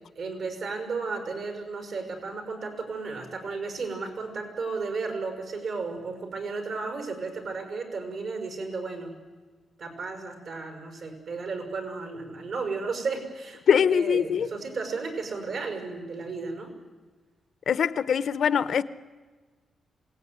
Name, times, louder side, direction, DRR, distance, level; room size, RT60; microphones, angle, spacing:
voice 1, 0.2-9.1 9.8-16.7, right 4 dB, 65° right, 5.7 m, -34 dB
voice 2, 13.7-14.5 17.7-18.8, left 7 dB, 65° left, 0.8 m, -22 dB
27.0 x 18.5 x 9.6 m
cardioid pair, 115°, 0 cm